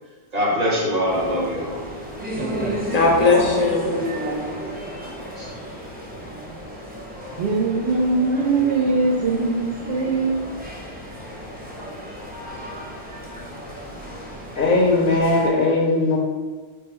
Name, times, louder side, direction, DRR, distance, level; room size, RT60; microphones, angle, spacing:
voice 1, 0.3-1.8 4.6-5.5, equal, 40° right, -5 dB, 1.1 m, -24 dB
sound 1, 1.0-15.5, equal, 15° right, 0.4 m, -33 dB
voice 2, 2.4-2.8 7.4-10.3, right 3 dB, 80° right, 1 dB, 0.9 m, -21 dB
voice 3, 2.9-3.9 14.6-16.2, left 3 dB, 60° left, 0 dB, 0.6 m, -18 dB
3.5 x 2.1 x 4.1 m, 1.4 s
omnidirectional pair, 1.1 m